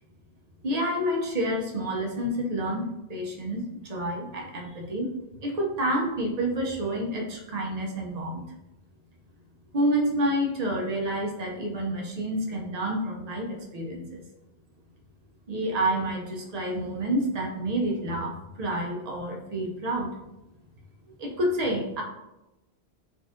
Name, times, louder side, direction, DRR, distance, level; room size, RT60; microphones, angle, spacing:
voice 1, 0.6-5.1 5.4-8.4 9.7-14.2 15.5-20.2 21.2-22.0, right 1 dB, 50° right, 0 dB, 0.5 m, -29 dB
3.6 x 2.5 x 2.4 m, 0.97 s
omnidirectional pair, 1.1 m